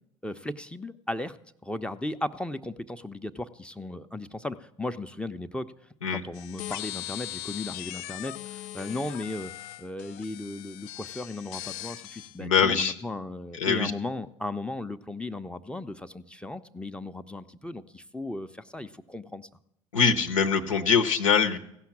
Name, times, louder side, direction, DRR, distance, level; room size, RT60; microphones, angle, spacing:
voice 1, 0.2-1.4 1.6-5.7 6.1-9.5 9.8-19.5, left 2 dB, 5° left, 9 dB, 0.5 m, -36 dB
sound 1, 6.3-12.4, left 15 dB, 60° left, 0.4 m, -40 dB
voice 2, 12.4-12.9 13.5-13.9 19.9-21.6, left 6 dB, 85° left, 6 dB, 0.8 m, -23 dB
16.0 x 5.8 x 7.2 m, 0.77 s
hypercardioid pair, 70°, 17 cm